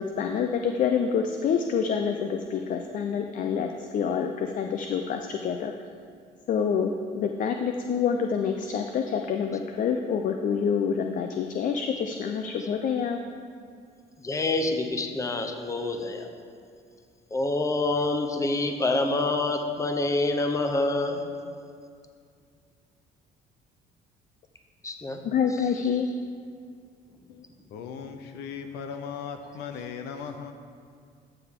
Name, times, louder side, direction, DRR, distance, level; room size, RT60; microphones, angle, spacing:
voice 1, 0.0-3.7 3.9-5.7 6.5-13.2 25.3-26.1, left 6 dB, 50° left, 5 dB, 0.5 m, -27 dB
voice 2, 14.2-16.3 17.3-21.3 24.8-25.2 25.5-26.0, left 2 dB, 20° left, 5 dB, 0.8 m, -27 dB
voice 3, 27.7-30.5, left 6 dB, 85° left, 7 dB, 0.7 m, -37 dB
12.5 x 6.8 x 3.7 m, 2.2 s
cardioid pair, 110°, 17 cm